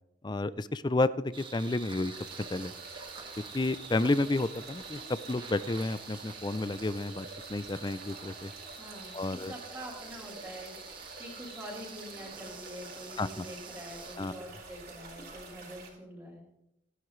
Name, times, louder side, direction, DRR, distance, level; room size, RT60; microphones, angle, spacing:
voice 1, 0.2-2.1 2.5-2.7 3.5-5.0 5.3-8.5 9.1-9.5 13.2-13.5 14.2-14.3, left 2 dB, 25° left, 15 dB, 0.4 m, -31 dB
sound 1, 1.3-14.2, right 5 dB, 25° right, 1.4 m, -48 dB
sound 2, 2.1-15.9, right 3 dB, 60° right, 4.3 m, -48 dB
voice 2, 8.8-16.4, equal, 10° right, -5 dB, 5.5 m, -45 dB
25.5 x 10.5 x 3.2 m, 0.85 s
head